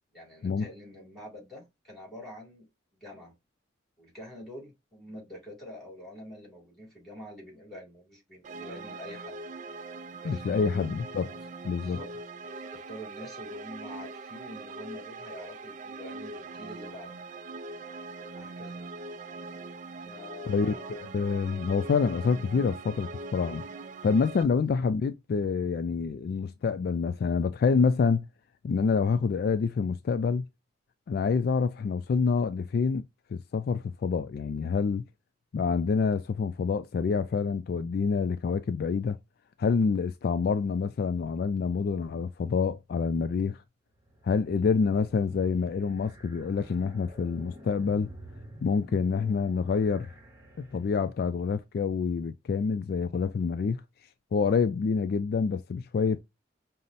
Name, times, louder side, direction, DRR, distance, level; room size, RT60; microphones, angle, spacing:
voice 1, 0.1-2.7 3.0-3.3 4.0-9.4 10.2-10.9 11.8-12.1 12.7-17.2 18.3-18.8 20.0-21.1 24.5-24.6, left 1 dB, ahead, 2.6 m, -46 dB
sound 1, 8.4-24.4, right 3 dB, 45° right, 0.3 m, -42 dB
voice 2, 10.2-11.3 11.6-12.0 20.5-23.6 24.0-28.3 28.6-30.4 31.1-33.0 33.3-35.0 35.5-39.2 39.6-43.6 44.2-48.1 48.6-50.1 50.6-53.8 54.3-56.2, left 5 dB, 55° left, 0.3 m, -27 dB
sound 2, 43.9-51.3, right 1 dB, 15° right, 1.0 m, -50 dB
5.4 x 2.0 x 2.5 m
head